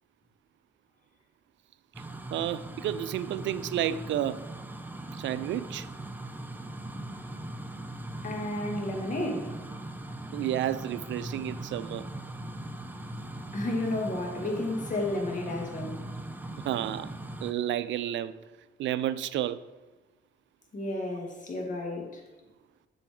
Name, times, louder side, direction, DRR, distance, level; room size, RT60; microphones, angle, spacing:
sound 1, 1.9-17.5, right 1 dB, 10° right, 0.7 m, -40 dB
voice 1, 2.3-4.4 5.1-5.9 10.3-12.1 16.6-17.1 17.4-18.3 18.8-19.6, right 11 dB, 70° right, 0.4 m, -31 dB
voice 2, 8.2-9.6 13.5-16.0 20.7-22.2, left 2 dB, 40° left, 2.0 m, -32 dB
7.6 x 7.0 x 3.7 m
cardioid pair, 90°, 20 cm